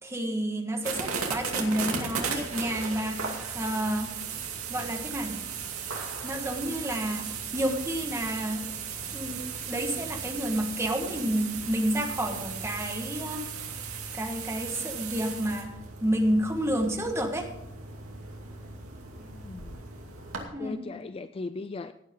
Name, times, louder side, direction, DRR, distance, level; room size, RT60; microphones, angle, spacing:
voice 1, 0.0-4.1 4.7-5.4 6.2-8.7 9.1-13.5 14.1-15.7 16.0-17.5 20.5-20.9, right 1 dB, 15° right, 3 dB, 1.6 m, -30 dB
sound 1, 0.8-20.4, right 5 dB, 90° right, 2.5 m, -36 dB
voice 2, 19.1-19.8 20.6-21.9, left 3 dB, 25° left, 11 dB, 0.3 m, -38 dB
17.5 x 9.7 x 3.8 m, 0.88 s
head